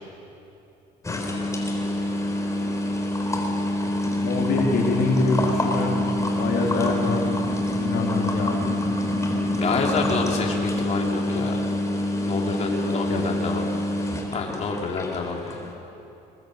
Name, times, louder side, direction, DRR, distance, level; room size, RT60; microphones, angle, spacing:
sound 1, 1.0-15.7, left 1 dB, 20° left, 3.8 m, -26 dB
voice 1, 4.2-6.0 6.4-7.3 7.8-8.7 12.6-13.2, left 3 dB, 70° left, 0 dB, 3.1 m, -25 dB
voice 2, 9.6-11.7 12.3-13.7 14.3-15.6, left 4 dB, 40° left, -1 dB, 3.3 m, -28 dB
21.5 x 21.5 x 8.0 m, 2.8 s
cardioid pair, 110°, 17 cm